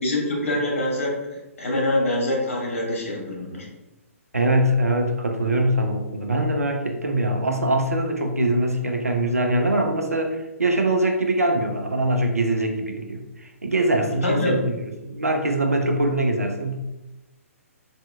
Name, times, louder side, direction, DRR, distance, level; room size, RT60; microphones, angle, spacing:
voice 1, 0.0-3.7 14.2-14.6, left 1 dB, 60° left, -1 dB, 1.1 m, -25 dB
voice 2, 4.3-16.8, right 1 dB, 80° right, 4 dB, 0.5 m, -23 dB
3.4 x 2.7 x 2.2 m, 1.0 s
figure-of-eight pair, 125°, 8 cm